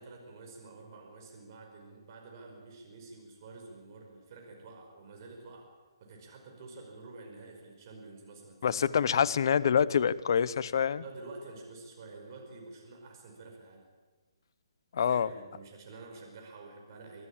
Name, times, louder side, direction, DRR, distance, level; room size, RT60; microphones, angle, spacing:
voice 1, 0.0-5.7 6.0-8.8 11.0-13.9 15.0-17.3, right 3 dB, 45° right, 1 dB, 5.3 m, -49 dB
voice 2, 8.6-11.0 14.9-15.3, left 7 dB, 55° left, 16 dB, 0.8 m, -26 dB
24.5 x 14.0 x 8.8 m, 1.4 s
figure-of-eight pair, 140°, 3 cm